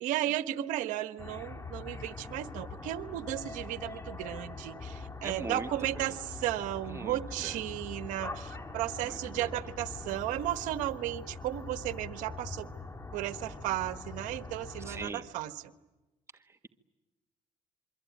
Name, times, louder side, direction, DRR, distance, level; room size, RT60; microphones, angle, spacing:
voice 1, 0.0-12.7 13.1-15.5, right 13 dB, 85° right, 11 dB, 1.2 m, -34 dB
sound 1, 1.2-15.1, left 3 dB, 20° left, 3.9 m, -43 dB
voice 2, 5.2-5.7 6.0-6.1 6.9-7.6 9.0-9.5 14.8-15.2 16.5-16.7, right 3 dB, 20° right, 7 dB, 1.6 m, -41 dB
27.0 x 23.5 x 9.2 m, 1.1 s
supercardioid pair, 75°, 13 cm